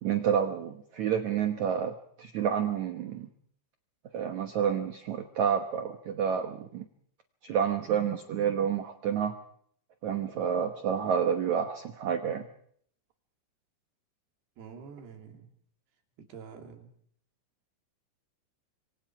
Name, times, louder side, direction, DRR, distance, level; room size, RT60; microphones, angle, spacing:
voice 1, 0.0-3.3 4.1-6.8 7.4-9.3 10.0-12.5, right 8 dB, 80° right, 7 dB, 1.6 m, -29 dB
voice 2, 14.6-15.5 16.2-16.9, right 6 dB, 65° right, 4 dB, 5.0 m, -47 dB
27.0 x 24.0 x 4.8 m, 0.63 s
omnidirectional pair, 5.2 m